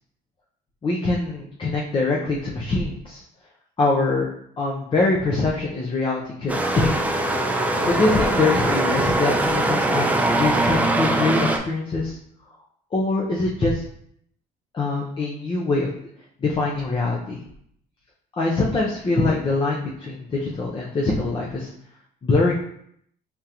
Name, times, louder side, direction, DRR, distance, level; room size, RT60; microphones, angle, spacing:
voice 1, 0.8-3.2 3.8-4.3 4.6-7.2 7.8-10.1 10.3-12.2 12.9-13.8 14.7-15.9 16.4-17.4 18.4-21.7 22.2-22.5, left 3 dB, 30° left, -2 dB, 0.6 m, -23 dB
sound 1, 6.5-11.6, right 1 dB, 10° right, 0.4 m, -22 dB
3.6 x 3.6 x 2.9 m, 0.69 s
cardioid pair, 110°, 17 cm